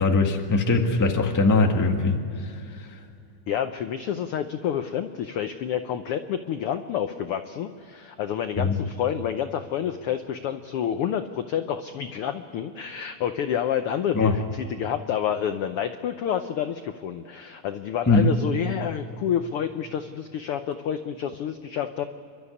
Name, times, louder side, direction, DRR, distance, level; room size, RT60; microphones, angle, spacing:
voice 1, 0.0-2.2 8.6-8.8 14.1-14.3 18.1-18.4, left 3 dB, 15° left, 3 dB, 0.7 m, -20 dB
voice 2, 3.5-22.0, left 9 dB, 80° left, 8 dB, 1.2 m, -29 dB
29.0 x 12.5 x 9.9 m, 2.5 s
omnidirectional pair, 3.4 m